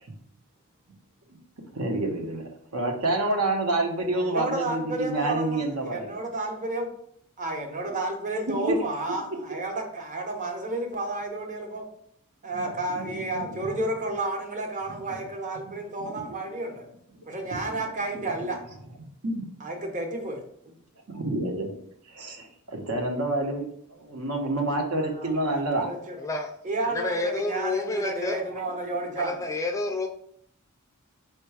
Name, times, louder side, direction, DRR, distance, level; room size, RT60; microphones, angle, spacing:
voice 1, 1.7-6.2 12.5-12.6 12.9-13.5 15.7-15.8 16.0-16.3 17.1-17.2 17.6-17.8 19.2-19.4 21.1-21.8 22.1-23.6 23.9-25.9 28.6-28.8, right 2 dB, 75° right, 1 dB, 0.9 m, -28 dB
voice 2, 4.0-6.9 7.4-11.8 12.4-16.9 17.3-18.6 19.6-20.4 25.0-26.2 26.6-29.3, right 2 dB, 35° right, 2 dB, 0.8 m, -31 dB
voice 3, 26.2-26.5 26.8-28.4 29.2-30.1, left 3 dB, 15° left, 4 dB, 0.3 m, -29 dB
4.5 x 2.2 x 4.6 m, 0.68 s
head